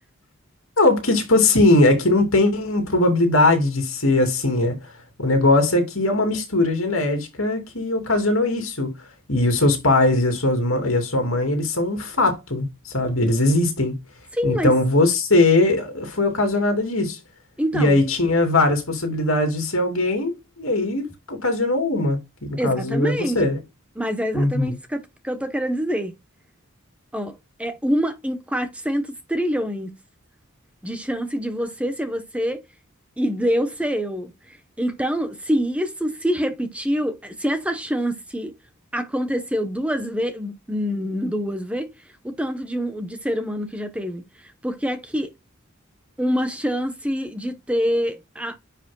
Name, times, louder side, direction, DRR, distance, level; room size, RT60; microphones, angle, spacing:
voice 1, 0.8-4.9 5.2-8.9 9.3-13.9 14.4-17.2 17.7-23.6 24.3-24.8, left 2 dB, 65° left, 2.8 m, -20 dB
voice 2, 14.3-14.7 17.6-18.0 22.6-23.5 24.0-26.1 27.1-30.0 30.8-32.6 33.2-38.5 38.9-41.9 42.2-45.3 46.2-48.6, equal, 5° right, 0.9 m, -26 dB
10.0 x 5.0 x 2.2 m
head